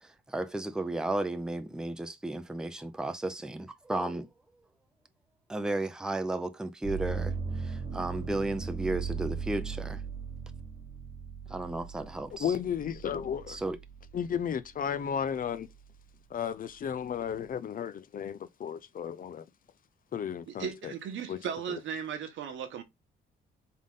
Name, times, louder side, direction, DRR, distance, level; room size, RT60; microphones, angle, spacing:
voice 1, 0.0-4.3 5.5-10.0 11.5-12.5 13.5-13.8, right 2 dB, 5° right, 0.5 m, -34 dB
sound 1, 6.8-14.6 15.1-15.9, right 5 dB, 30° right, 1.0 m, -38 dB
voice 2, 12.4-13.6 14.1-15.7 16.3-19.4 20.1-20.9 21.3-21.4, left 8 dB, 45° left, 0.5 m, -33 dB
voice 3, 20.5-22.8, right 7 dB, 75° right, 1.1 m, -36 dB
3.8 x 3.6 x 3.6 m
cardioid pair, 90°, 20 cm